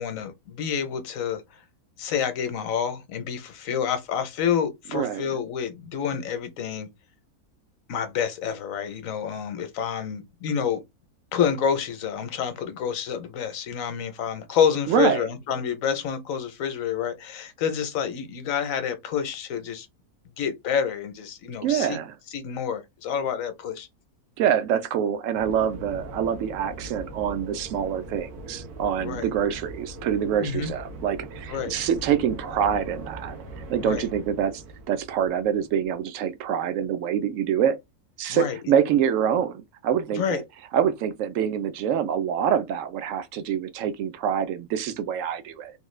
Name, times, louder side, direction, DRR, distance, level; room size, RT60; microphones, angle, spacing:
voice 1, 0.0-1.4 2.0-6.9 7.9-10.8 11.3-19.9 20.4-22.0 22.3-23.9 29.0-29.3 30.4-30.7 31.5-31.7 33.8-34.1 38.3-38.6 40.1-40.4, left 8 dB, 65° left, 1.1 m, -28 dB
voice 2, 4.9-5.2 14.9-15.3 21.6-22.1 24.4-33.3 33.7-37.8 38.2-40.4 40.7-45.7, right 8 dB, 65° right, 0.9 m, -25 dB
sound 1, 25.3-36.0, right 2 dB, 80° right, 1.3 m, -41 dB
3.6 x 2.3 x 3.1 m
omnidirectional pair, 1.6 m